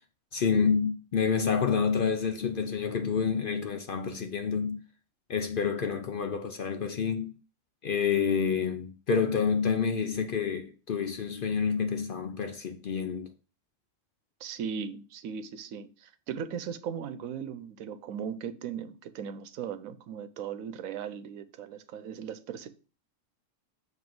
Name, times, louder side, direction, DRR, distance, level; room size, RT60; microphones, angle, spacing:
voice 1, 0.3-4.8 5.3-7.3 7.8-13.3, left 6 dB, 55° left, 0.6 m, -28 dB
voice 2, 14.4-22.8, right 7 dB, 90° right, 1.1 m, -38 dB
7.3 x 3.0 x 5.9 m
omnidirectional pair, 1.4 m